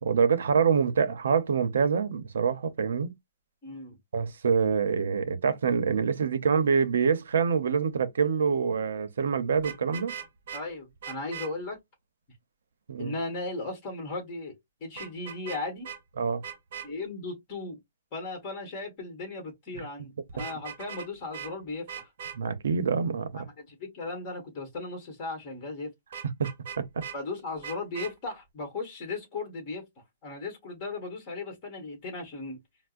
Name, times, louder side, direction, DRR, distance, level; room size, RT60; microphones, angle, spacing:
voice 1, 0.0-3.1 4.1-10.1 12.9-13.1 16.2-16.4 22.3-23.4 26.4-26.5 26.8-27.0, right 6 dB, 75° right, 0.7 m, -26 dB
voice 2, 3.6-4.0 10.5-11.8 13.0-14.5 14.8-15.9 16.8-17.8 18.1-22.1 23.3-25.9 27.1-29.8 30.2-32.6, left 3 dB, 20° left, 1.4 m, -36 dB
Vehicle horn car horn honking, 9.6-10.6 11.0-11.5 15.0-15.6 15.8-16.0 16.4-16.9 20.3-21.1 21.3-21.5 21.9-22.4 26.1-27.2 27.6-28.1, right 8 dB, 45° right, 0.8 m, -39 dB
4.5 x 2.0 x 2.4 m
hypercardioid pair, 175°, 0 cm